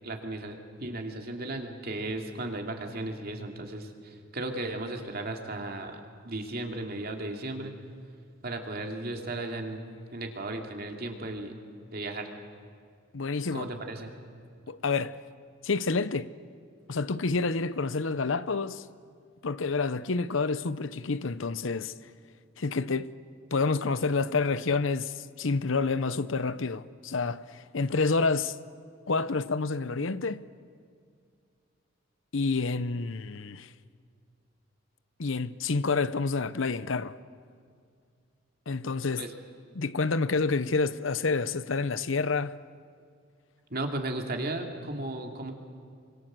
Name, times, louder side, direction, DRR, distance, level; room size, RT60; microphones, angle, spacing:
voice 1, 0.0-7.8 8.4-9.8 10.1-11.6 11.9-12.3 13.5-14.1 39.2-39.3 43.7-45.5, right 2 dB, 50° right, 2.8 m, -35 dB
voice 2, 13.1-13.7 14.7-15.2 15.6-16.3 16.9-18.8 19.4-21.9 22.6-23.1 23.5-28.6 29.1-30.4 32.3-33.7 35.2-37.1 38.7-39.3 39.7-42.6, left 4 dB, 75° left, 0.8 m, -28 dB
28.5 x 25.0 x 7.7 m
head